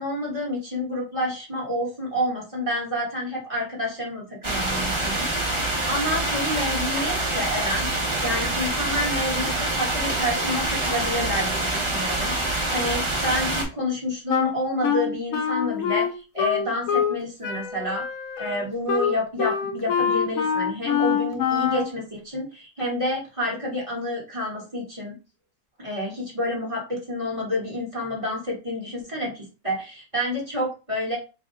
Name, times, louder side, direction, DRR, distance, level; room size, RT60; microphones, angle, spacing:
voice 1, 0.0-7.9 8.2-18.0 18.4-25.1 25.8-31.2, left 1 dB, 20° right, -4 dB, 1.0 m, -29 dB
sound 1, 4.4-13.6, right 2 dB, 45° right, 0.3 m, -26 dB
Wind instrument woodwind instrument, 14.3-17.2 17.4-21.9, left 7 dB, 70° left, 0.8 m, -25 dB
3.3 x 2.2 x 3.7 m, 0.31 s
omnidirectional pair, 2.0 m